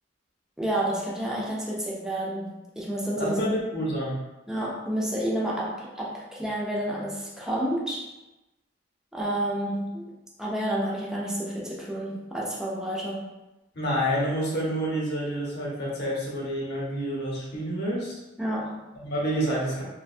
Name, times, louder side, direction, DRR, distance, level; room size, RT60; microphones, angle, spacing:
voice 1, 0.6-3.4 4.5-8.1 9.1-13.2 18.4-18.9, right 1 dB, 5° right, -5 dB, 0.4 m, -30 dB
voice 2, 3.2-4.2 13.7-18.1 19.0-19.8, equal, 60° left, -5 dB, 0.7 m, -28 dB
2.4 x 2.1 x 2.6 m, 1.0 s
head